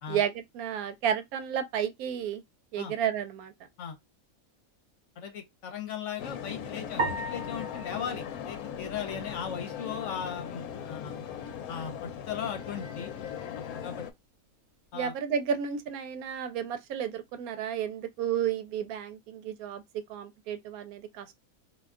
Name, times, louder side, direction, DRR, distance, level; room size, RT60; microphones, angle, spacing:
voice 1, 0.1-2.4 2.7-3.5 14.9-19.8 20.1-21.3, right 8 dB, 90° right, 1.1 m, -32 dB
voice 2, 5.2-11.2 11.7-13.1 13.7-14.0 14.9-15.1, left 7 dB, 65° left, 1.0 m, -37 dB
sound 1, 6.2-14.1, left 8 dB, 90° left, 1.0 m, -39 dB
sound 2, 7.0-9.5, right 2 dB, 60° right, 1.0 m, -36 dB
2.6 x 2.2 x 3.5 m
omnidirectional pair, 1.5 m